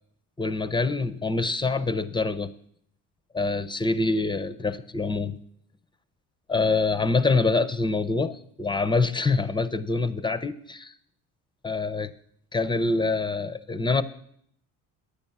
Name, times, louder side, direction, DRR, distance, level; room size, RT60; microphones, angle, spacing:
voice 1, 0.4-2.5 3.3-5.4 6.5-10.9 11.6-12.1 12.5-14.0, left 3 dB, 10° left, 12 dB, 0.5 m, -25 dB
9.9 x 7.9 x 7.1 m, 0.68 s
cardioid pair, 115°, 38 cm